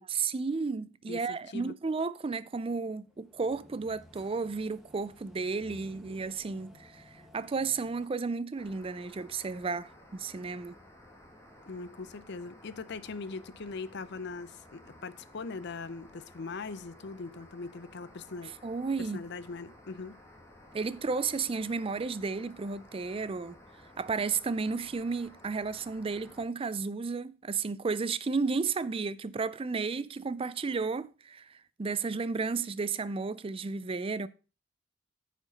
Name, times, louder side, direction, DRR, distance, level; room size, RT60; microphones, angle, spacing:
voice 1, 0.1-7.0 7.3-10.8 18.6-19.2 20.7-23.6 24.0-34.3, right 4 dB, 30° right, 0.4 m, -33 dB
voice 2, 1.1-1.7 11.6-18.5 19.0-20.2, left 4 dB, 60° left, 0.6 m, -41 dB
sound 1, 3.0-8.1, equal, ahead, 1.3 m, -55 dB
sound 2, 8.6-26.4, left 1 dB, 15° left, 1.8 m, -55 dB
9.6 x 5.1 x 5.1 m
head